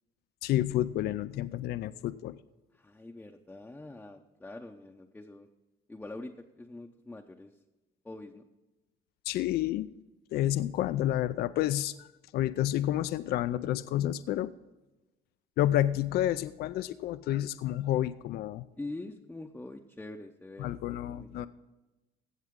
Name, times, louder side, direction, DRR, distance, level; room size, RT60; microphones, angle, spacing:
voice 1, 0.4-2.4 9.3-9.9 10.3-14.5 15.6-18.7 20.6-21.5, left 13 dB, 70° left, 14 dB, 0.4 m, -30 dB
voice 2, 2.7-5.5 5.9-7.5 8.0-8.4 18.8-21.5, left 2 dB, 10° left, 2 dB, 0.7 m, -44 dB
16.0 x 7.3 x 3.7 m, 1.1 s
cardioid pair, 110°, 17 cm